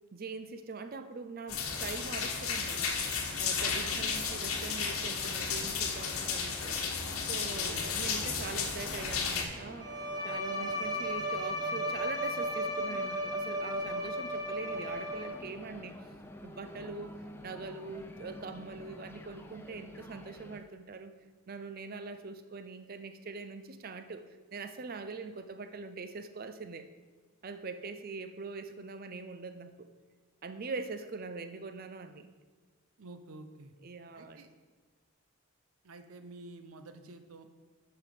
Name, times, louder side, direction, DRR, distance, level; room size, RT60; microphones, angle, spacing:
voice 1, 0.1-3.0 3.4-6.8 7.3-9.9 10.2-16.0 16.4-17.1 17.4-21.1 21.5-26.9 27.4-29.7 30.4-32.3 33.8-34.4, right 4 dB, 40° right, 10 dB, 0.5 m, -42 dB
sound 1, 1.5-9.4, left 5 dB, 70° left, 1.2 m, -33 dB
voice 2, 3.6-4.0 7.6-7.9 33.0-33.7 34.1-34.5 35.8-37.5, right 2 dB, 75° right, 8 dB, 0.7 m, -49 dB
sound 2, 4.5-20.6, left 1 dB, 10° left, 0.4 m, -50 dB
Bowed string instrument, 9.8-15.6, equal, 15° right, 0.9 m, -35 dB
9.2 x 5.9 x 5.1 m, 1.4 s
head